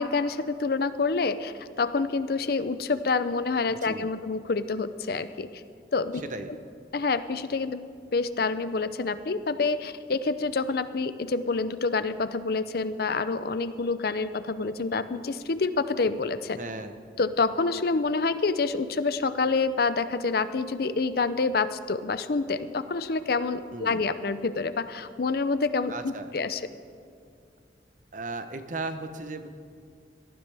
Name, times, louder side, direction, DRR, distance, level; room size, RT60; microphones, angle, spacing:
voice 1, 0.0-5.5 5.9-6.2 6.9-16.6 17.2-26.6, left 4 dB, 55° left, 13 dB, 0.5 m, -27 dB
voice 2, 3.7-4.1 6.2-6.5 16.6-16.9 23.7-24.0 25.9-26.3 28.1-29.5, right 3 dB, 45° right, 9 dB, 0.8 m, -36 dB
18.0 x 13.0 x 3.4 m, 2.4 s
head